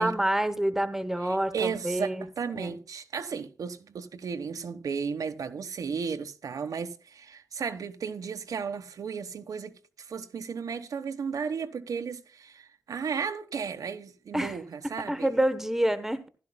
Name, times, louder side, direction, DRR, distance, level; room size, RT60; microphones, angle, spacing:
voice 1, 0.0-2.3 2.5-2.7 14.3-14.6 15.1-16.3, right 1 dB, 5° right, 1.1 m, -27 dB
voice 2, 1.2-2.1 2.4-15.3, right 6 dB, 85° right, 1.2 m, -34 dB
15.5 x 12.0 x 2.2 m
wide cardioid pair, 175°, 6 cm